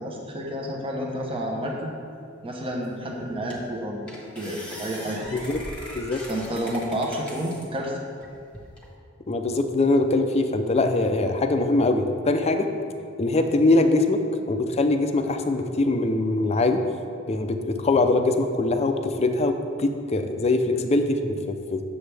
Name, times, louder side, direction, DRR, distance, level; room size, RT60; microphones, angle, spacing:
voice 1, 0.0-1.9 2.4-5.5 6.3-8.0, equal, 25° right, -1 dB, 0.9 m, -30 dB
sound 1, 2.8-2.9 3.5-3.7 4.1-7.7 8.2-8.9, left 1 dB, 5° left, 1.4 m, -40 dB
voice 2, 9.3-12.7 13.2-14.2 14.5-16.8 17.3-21.8, left 2 dB, 30° left, 6 dB, 0.5 m, -22 dB
9.4 x 7.0 x 3.4 m, 2.3 s
head